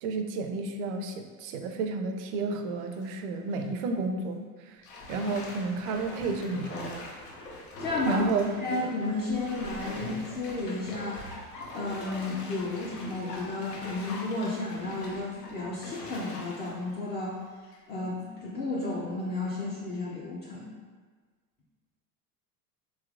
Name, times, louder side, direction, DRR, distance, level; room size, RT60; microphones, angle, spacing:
voice 1, 0.0-4.8 5.1-7.0 8.1-8.6, right 3 dB, 65° right, 5 dB, 0.5 m, -31 dB
Bathtub (filling or washing), 2.7-3.1 3.5-3.6 4.8-17.9 18.4-18.5, left 2 dB, 85° left, 0.7 m, -42 dB
voice 2, 7.8-8.3 8.6-11.2 11.7-17.4 17.9-20.7, left 2 dB, 25° left, -5 dB, 0.4 m, -32 dB
3.3 x 2.8 x 2.4 m, 1.5 s
hypercardioid pair, 90°, 47 cm